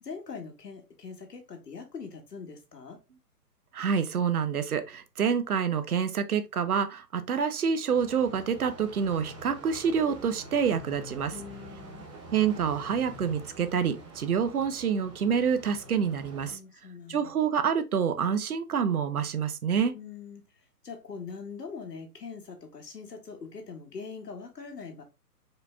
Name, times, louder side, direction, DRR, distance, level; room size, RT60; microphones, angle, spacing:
voice 1, 0.0-3.0 11.3-12.1 16.5-17.3 19.8-20.4 20.8-25.0, left 5 dB, 85° left, 1.9 m, -42 dB
voice 2, 3.7-11.3 12.3-16.6 17.1-19.9, right 7 dB, 65° right, 0.9 m, -27 dB
sound 1, 7.9-16.5, right 1 dB, 20° right, 0.8 m, -46 dB
4.9 x 4.2 x 2.3 m
hypercardioid pair, 155°, 47 cm